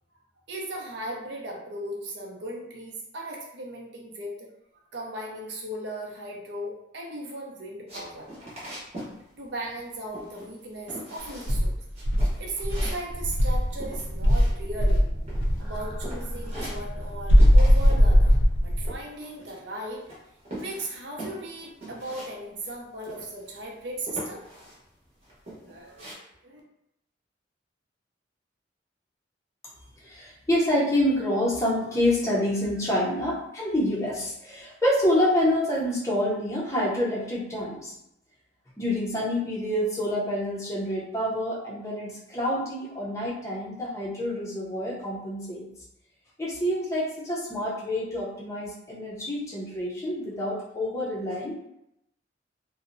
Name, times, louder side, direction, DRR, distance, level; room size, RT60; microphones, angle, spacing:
voice 1, 0.5-4.5 4.9-8.3 9.4-11.7 12.1-15.0 15.6-18.4 18.6-20.0 20.6-24.4 25.5-26.6, right 1 dB, 65° right, -1 dB, 0.6 m, -37 dB
sound 1, 7.9-9.2 9.4-9.9 10.1-10.6 10.9-11.6 11.9-15.0 15.3-15.8 16.0-17.1 17.4-18.0 18.3-19.8 20.1-22.3 22.6-22.7 23.0-23.6 24.1-24.8 25.2-26.1, right 1 dB, 35° right, 0.8 m, -41 dB
Insect, 11.5-13.7 14.2-15.6 17.3-18.9, equal, 70° left, 0.4 m, -19 dB
sound 2, 13.1-18.9, equal, 5° right, 0.8 m, -35 dB
voice 2, 30.0-37.9 38.8-45.7 46.4-51.5, left 1 dB, 15° left, -6 dB, 0.5 m, -27 dB
2.7 x 2.0 x 2.5 m, 0.83 s
head